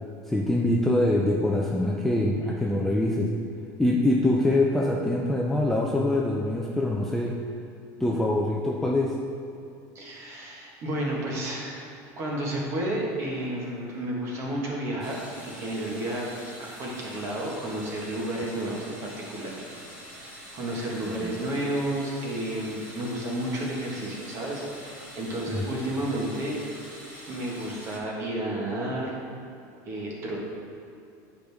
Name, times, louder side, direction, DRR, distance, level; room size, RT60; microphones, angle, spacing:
voice 1, 0.3-3.3 3.8-7.3 8.0-9.1 21.2-21.3 25.5-25.6, left 1 dB, 5° left, -2 dB, 0.3 m, -24 dB
voice 2, 9.9-11.9 12.2-16.3 16.6-19.6 20.5-26.6 27.3-29.2 29.9-30.4, right 1 dB, 30° right, -2 dB, 1.4 m, -31 dB
sound 1, 15.0-28.0, equal, 15° right, 1.4 m, -45 dB
10.0 x 5.1 x 3.5 m, 2.6 s
cardioid pair, 170°, 9 cm